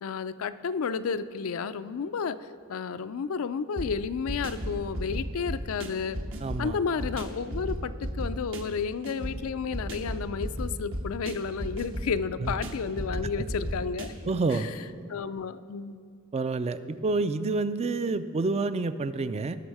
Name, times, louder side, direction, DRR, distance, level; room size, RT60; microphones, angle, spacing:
voice 1, 0.0-2.4 2.7-6.2 6.6-14.1 14.5-14.8 15.1-16.0, left 5 dB, 75° left, 13 dB, 0.4 m, -32 dB
sound 1, 3.8-14.6, equal, 65° right, 1.1 m, -35 dB
voice 2, 6.4-6.8 12.4-12.5 14.3-14.7 16.3-19.6, right 3 dB, 30° right, 12 dB, 0.3 m, -28 dB
18.5 x 6.2 x 4.7 m, 2.2 s
head